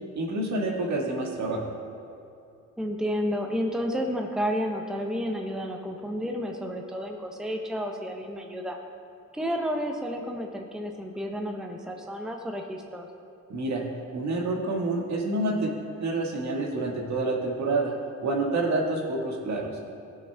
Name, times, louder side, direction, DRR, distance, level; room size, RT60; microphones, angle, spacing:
voice 1, 0.2-1.6 13.5-13.8 14.1-15.7 16.0-17.9 18.2-19.7, right 2 dB, 65° right, -1 dB, 1.8 m, -28 dB
voice 2, 2.8-8.8 9.3-13.1, equal, ahead, 2 dB, 0.8 m, -31 dB
16.0 x 6.5 x 3.5 m, 2.5 s
cardioid pair, 90°, 30 cm